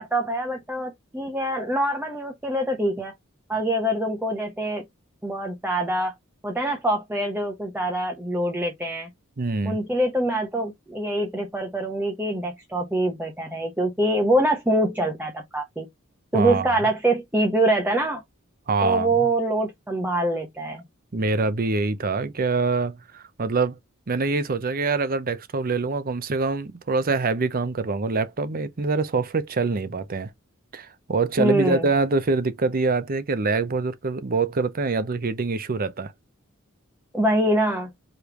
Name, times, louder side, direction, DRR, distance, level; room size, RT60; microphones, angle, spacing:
voice 1, 0.0-3.1 3.5-4.8 5.2-6.1 6.4-9.1 9.6-15.9 16.3-18.2 18.8-20.8 31.4-31.9 37.1-37.9, right 1 dB, 10° right, 1.0 m, -24 dB
voice 2, 9.4-9.8 16.3-16.7 18.7-19.3 21.1-23.8 24.1-30.3 30.7-36.1, right 3 dB, 45° right, 0.6 m, -25 dB
5.0 x 3.3 x 3.0 m
head